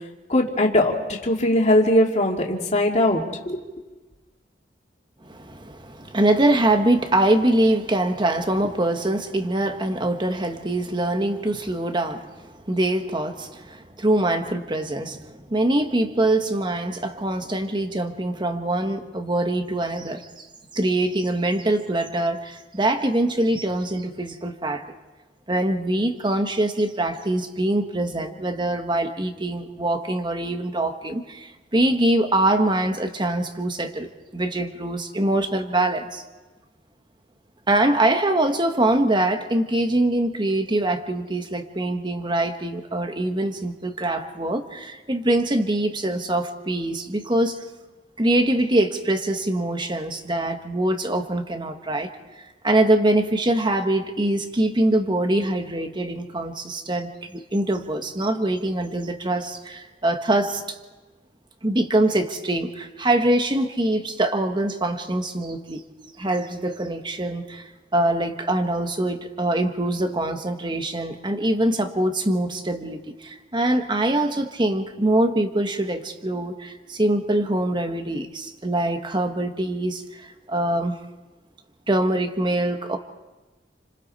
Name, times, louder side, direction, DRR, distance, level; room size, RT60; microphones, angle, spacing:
voice 1, 0.3-3.6, left 1 dB, 40° left, 0 dB, 2.6 m, -20 dB
voice 2, 5.2-20.5 20.7-24.8 25.5-36.2 37.7-47.6 48.2-52.1 52.6-60.8 61.6-65.8 66.2-80.9 81.9-83.0, right 1 dB, 25° right, 6 dB, 1.5 m, -23 dB
30.0 x 26.0 x 4.3 m, 1.2 s
head